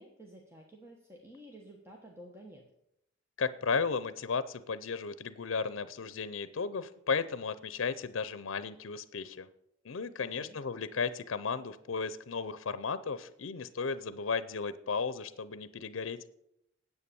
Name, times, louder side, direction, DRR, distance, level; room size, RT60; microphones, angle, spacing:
voice 1, 0.0-2.6 10.2-10.6, right 1 dB, 15° right, 0 dB, 1.2 m, -52 dB
voice 2, 3.4-9.5 9.8-16.2, left 5 dB, 80° left, 15 dB, 0.6 m, -34 dB
9.8 x 8.2 x 6.9 m, 0.78 s
head